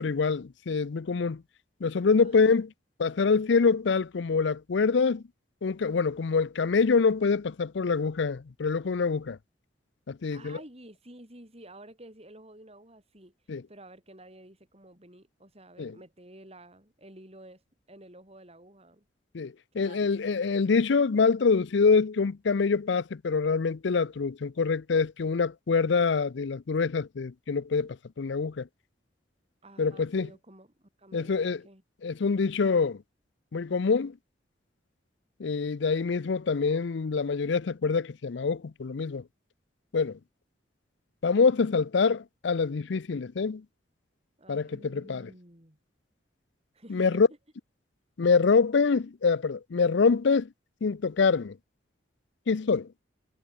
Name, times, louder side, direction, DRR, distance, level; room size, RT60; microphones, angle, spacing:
voice 1, 0.0-1.4 1.8-2.7 3.0-5.2 5.6-9.4 10.1-10.6 13.5-13.6 15.8-16.0 19.3-28.7 29.8-30.3 31.1-31.6 32.0-33.0 33.5-34.2 35.4-39.2 39.9-40.2 41.2-43.6 44.5-45.3 46.9-47.3 48.2-50.5 50.8-51.6 52.5-52.9, left 5 dB, 65° left, 0.5 m, -25 dB
voice 2, 2.2-2.6 10.3-13.3 13.7-17.6 17.9-19.0 19.7-20.4 29.6-31.8 44.4-45.8 46.7-47.2, right 1 dB, 30° right, 7.9 m, -51 dB
head